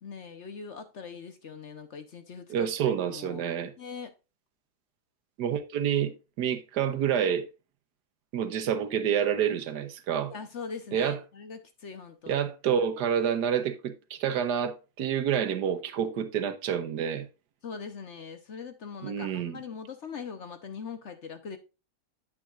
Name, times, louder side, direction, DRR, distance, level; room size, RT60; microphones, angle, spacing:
voice 1, 0.0-4.1 10.2-12.4 17.6-21.6, left 5 dB, 50° left, 1.0 m, -42 dB
voice 2, 2.5-3.7 5.4-7.5 8.3-10.3 10.9-11.2 12.3-17.3 19.0-19.6, right 8 dB, 80° right, 1.5 m, -28 dB
8.5 x 8.3 x 2.4 m
omnidirectional pair, 1.8 m